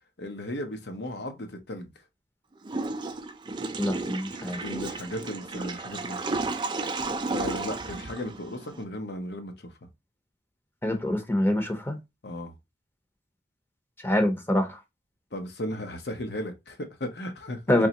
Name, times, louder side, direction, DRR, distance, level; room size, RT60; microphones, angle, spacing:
voice 1, 0.2-1.9 4.5-6.5 7.3-9.9 12.2-12.5 15.3-17.6, left 1 dB, 70° left, 0.9 m, -36 dB
Water / Toilet flush, 2.6-8.8, right 3 dB, 25° right, 0.4 m, -33 dB
voice 2, 3.8-4.6 10.8-12.0 14.0-14.8 17.7-17.9, left 1 dB, 10° left, 0.7 m, -25 dB
3.7 x 3.0 x 2.8 m
head